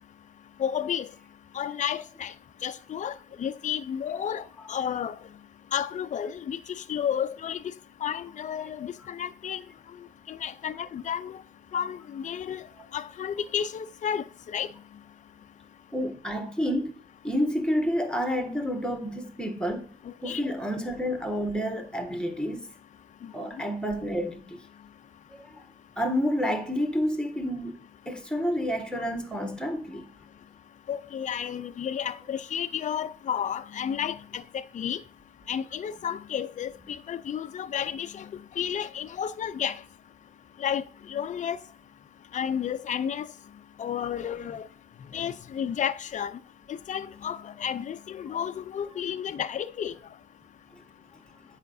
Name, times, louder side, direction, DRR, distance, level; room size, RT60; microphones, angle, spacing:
voice 1, 0.6-1.1 1.5-2.3 2.6-5.2 5.7-7.7 8.0-9.6 10.3-11.4 11.7-12.6 12.9-14.7 20.0-20.4 23.2-23.3 30.9-35.0 35.5-39.8 40.6-40.8 41.1-41.6 42.3-43.3 43.8-44.7 45.1-46.4 46.7-49.9, left 8 dB, 40° left, 0.5 m, -32 dB
voice 2, 15.9-19.9 20.2-22.7 23.3-24.7 25.4-25.6 26.0-30.1 50.7-50.8, equal, 5° left, 1.5 m, -29 dB
8.1 x 5.7 x 2.6 m
cardioid pair, 90°, 20 cm